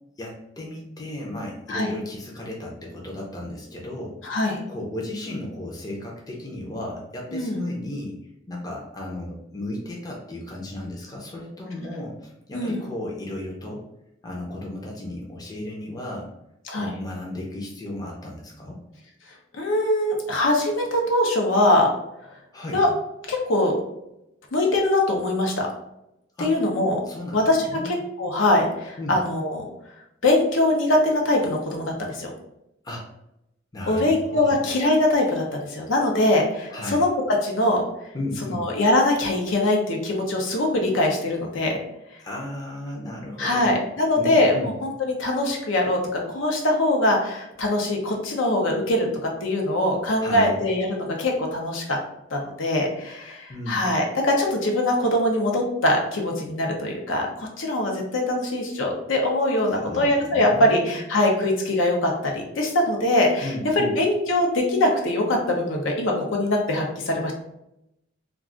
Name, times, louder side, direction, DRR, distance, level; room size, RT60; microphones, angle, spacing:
voice 1, 0.2-4.2 4.7-8.2 8.5-13.8 14.2-16.3 16.7-18.8 22.5-22.8 26.4-26.5 27.0-27.9 29.0-29.2 32.8-33.1 33.7-34.6 36.7-37.0 38.1-38.6 42.2-43.7 44.1-44.7 50.2-50.6 53.5-53.9 59.7-61.0 63.4-63.9, left 1 dB, 20° left, -2 dB, 0.5 m, -34 dB
voice 2, 4.2-4.6 7.3-7.6 12.5-12.8 16.7-16.9 19.5-21.9 22.7-22.9 23.3-23.8 24.5-25.7 26.4-27.0 27.3-29.6 30.2-32.3 33.9-37.1 37.4-37.8 38.5-41.8 43.4-52.0 52.3-63.5 63.8-67.3, left 1 dB, 80° left, 0 dB, 0.6 m, -22 dB
2.3 x 2.3 x 3.7 m, 0.85 s
head